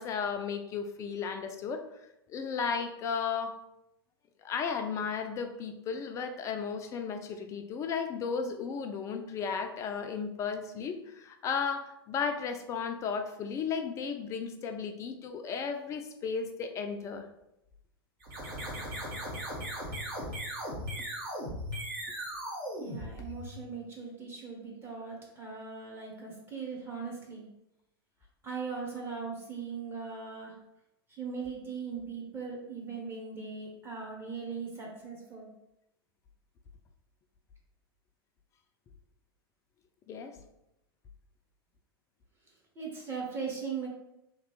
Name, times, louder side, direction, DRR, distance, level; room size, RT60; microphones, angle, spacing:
voice 1, 0.0-1.8 2.3-3.6 4.4-17.3 40.1-40.3, left 6 dB, 25° left, 6 dB, 0.4 m, -34 dB
sound 1, 18.2-23.7, equal, 60° right, 1.5 m, -38 dB
voice 2, 22.8-27.4 28.4-30.5 31.1-35.5 42.8-43.9, right 5 dB, 15° right, -2 dB, 0.9 m, -39 dB
3.0 x 2.8 x 3.1 m, 0.85 s
figure-of-eight pair, 95°, 13 cm